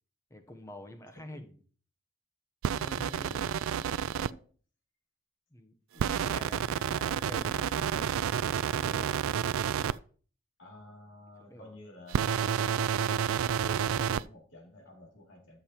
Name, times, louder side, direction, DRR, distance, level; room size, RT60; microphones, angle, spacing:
voice 1, 0.3-1.6 2.8-3.4 5.5-8.3 8.6-9.1 11.5-11.7, equal, 15° left, 0.9 m, -47 dB
voice 2, 1.1-1.5 2.9-4.5 10.6-12.3 12.7-15.6, left 1 dB, 65° left, 2.6 m, -51 dB
sound 1, 2.6-4.3 6.0-9.9 12.1-14.2, right 8 dB, 80° right, 0.3 m, -30 dB
13.0 x 6.9 x 2.9 m
head